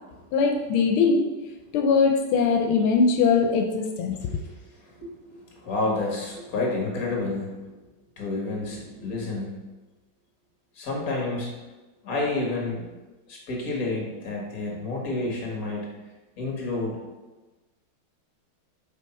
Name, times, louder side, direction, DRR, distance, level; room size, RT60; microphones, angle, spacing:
voice 1, 0.3-1.2 1.7-4.2, left 5 dB, 90° left, 4 dB, 1.5 m, -21 dB
voice 2, 5.0-7.5 8.2-9.6 10.8-11.5 12.0-12.9 13.3-16.0 16.4-17.0, left 2 dB, 45° left, -2 dB, 1.8 m, -29 dB
5.4 x 4.8 x 4.3 m, 1.2 s
omnidirectional pair, 2.3 m